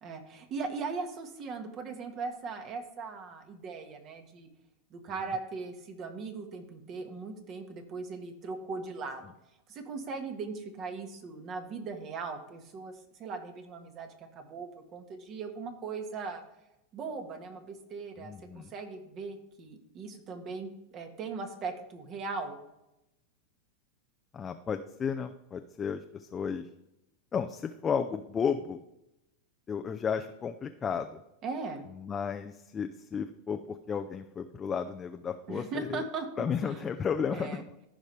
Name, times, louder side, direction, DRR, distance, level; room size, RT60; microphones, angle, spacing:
voice 1, 0.0-4.5 4.9-9.3 9.7-16.4 16.9-22.6 31.4-31.8 35.5-36.9 37.3-37.6, right 4 dB, 40° right, 5 dB, 1.6 m, -39 dB
voice 2, 18.2-18.7 24.3-26.7 27.3-28.8 29.7-31.2 32.0-36.0 36.4-37.6, left 6 dB, 25° left, 6 dB, 0.5 m, -33 dB
14.5 x 5.2 x 3.4 m, 0.88 s
hypercardioid pair, 100°, 0 cm